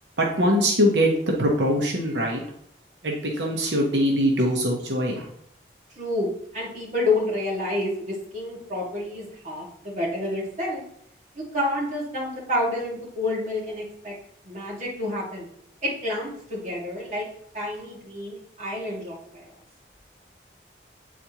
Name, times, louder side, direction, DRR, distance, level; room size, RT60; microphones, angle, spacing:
voice 1, 0.2-2.4 3.0-5.3, equal, 85° right, -1 dB, 1.0 m, -22 dB
voice 2, 6.0-10.8 11.4-14.1 14.4-15.5 15.8-17.3 17.5-19.4, left 1 dB, 40° right, -5 dB, 2.1 m, -29 dB
8.2 x 4.2 x 3.0 m, 0.68 s
head